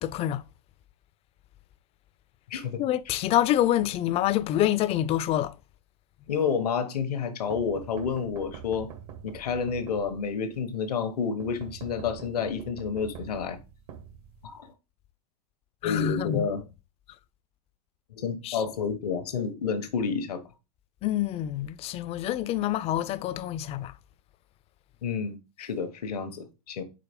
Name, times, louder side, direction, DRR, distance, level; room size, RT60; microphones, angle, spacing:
voice 1, 0.0-0.4 2.8-5.6 15.8-16.5 18.4-18.6 21.0-24.0, left 12 dB, 30° left, 0.4 m, -26 dB
voice 2, 2.5-2.8 6.3-8.9 9.2-13.6 14.4-14.7 15.8-16.6 18.1-20.4 25.0-26.8, left 6 dB, 85° left, 1.2 m, -30 dB
sound 1, 7.5-10.5 11.4-14.7, right 7 dB, 75° right, 1.4 m, -44 dB
4.9 x 4.2 x 5.1 m
hypercardioid pair, 120°, 20 cm